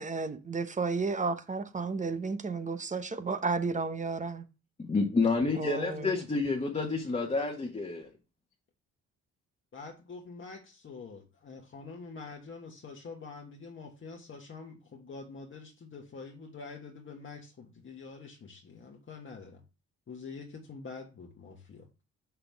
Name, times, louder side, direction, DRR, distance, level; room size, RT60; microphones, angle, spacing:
voice 1, 0.0-4.5 5.6-6.2, right 4 dB, 25° right, 0.8 m, -32 dB
voice 2, 4.9-8.1, left 3 dB, 25° left, 1.4 m, -29 dB
voice 3, 5.5-6.3 9.7-19.6 20.1-21.9, left 4 dB, 40° left, 1.4 m, -46 dB
5.8 x 5.8 x 3.4 m
cardioid pair, 90°, 30 cm